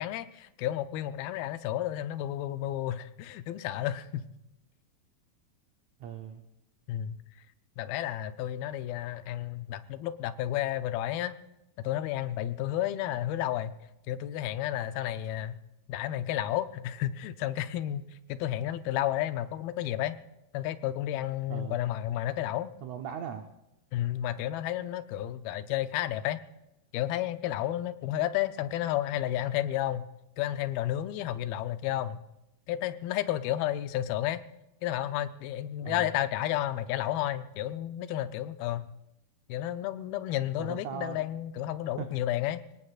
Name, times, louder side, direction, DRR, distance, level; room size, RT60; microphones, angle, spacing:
voice 1, 0.0-4.3 6.9-7.2 7.8-11.3 11.8-13.7 14.1-15.6 15.9-18.0 18.3-20.2 20.5-22.7 23.9-26.4 26.9-30.1 30.4-32.2 32.7-34.4 34.8-38.9 39.5-42.6, left 12 dB, 80° left, 11 dB, 2.5 m, -31 dB
voice 2, 6.0-6.4 21.5-21.8 22.8-23.5 35.8-36.1 40.6-41.2 42.0-42.1, right 8 dB, 85° right, 4 dB, 1.5 m, -38 dB
29.0 x 18.0 x 2.4 m, 0.89 s
omnidirectional pair, 4.3 m